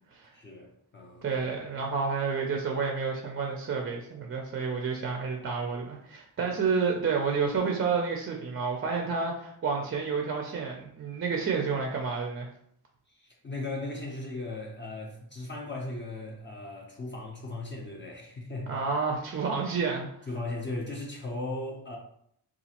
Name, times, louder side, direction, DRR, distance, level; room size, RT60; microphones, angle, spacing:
voice 1, 0.3-1.4 6.4-6.5 13.1-18.8 20.3-22.0, left 2 dB, 30° left, -2 dB, 0.5 m, -37 dB
voice 2, 1.2-12.5 18.7-20.3, right 5 dB, 35° right, 1 dB, 0.4 m, -30 dB
3.9 x 2.4 x 2.8 m, 0.69 s
wide cardioid pair, 160°, 40 cm